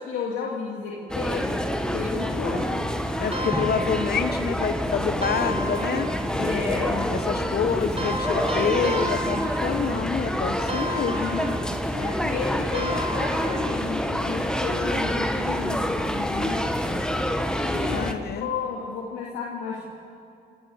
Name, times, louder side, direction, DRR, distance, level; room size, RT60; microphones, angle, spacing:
voice 1, 0.0-1.6 1.9-2.9 6.4-7.1 7.6-7.7 11.9-17.1 17.6-18.1 18.4-19.9, left 5 dB, 80° left, -2 dB, 2.4 m, -32 dB
sound 1, 1.1-18.1, equal, 5° left, 1.8 m, -27 dB
voice 2, 3.2-6.1 7.1-11.5 17.9-18.5, left 6 dB, 55° left, 10 dB, 1.5 m, -27 dB
sound 2, 3.3-4.6 5.2-6.5 8.0-10.1 10.7-12.0 12.7-14.0, right 1 dB, 30° right, 4.1 m, -33 dB
27.5 x 14.5 x 8.1 m, 2.6 s
hypercardioid pair, 55°, 20 cm